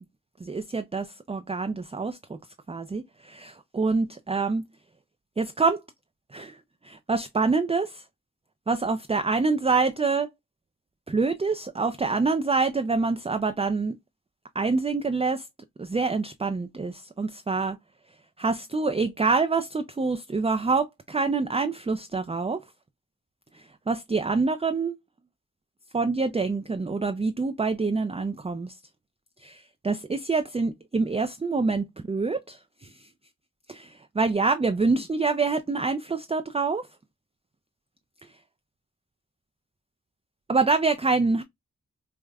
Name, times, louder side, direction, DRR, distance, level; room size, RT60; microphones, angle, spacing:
voice 1, 0.4-2.4 2.7-4.6 5.4-5.8 6.3-8.0 8.7-10.3 11.1-14.0 14.5-15.5 15.8-17.8 18.4-22.6 23.5-25.0 25.9-28.8 29.4-33.1 33.7-36.9 38.2-38.3 40.5-41.4, right 4 dB, 20° right, 0.3 m, -26 dB
4.8 x 2.1 x 2.2 m
wide cardioid pair, 45°, 34 cm